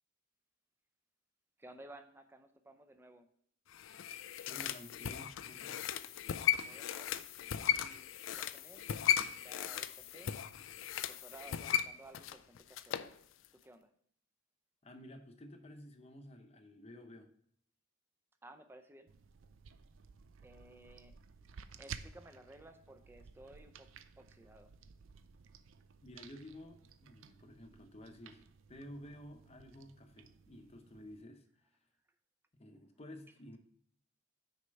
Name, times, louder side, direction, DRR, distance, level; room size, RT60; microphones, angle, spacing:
voice 1, 1.6-3.3 6.6-7.2 7.6-8.1 8.4-8.9 9.3-10.3 11.1-13.0 13.6-13.9 18.4-19.1 20.4-21.1 21.7-23.9 24.2-24.7, right 1 dB, 10° right, 8 dB, 0.5 m, -56 dB
sound 1, 3.7-13.1 13.4-13.5, left 10 dB, 70° left, 0.4 m, -36 dB
voice 2, 4.5-5.9 14.8-17.3 26.0-31.4 32.5-33.6, left 1 dB, 30° left, 6 dB, 0.7 m, -52 dB
sound 2, 19.1-31.2, right 6 dB, 75° right, 0.4 m, -55 dB
6.4 x 4.4 x 5.2 m, 0.66 s
head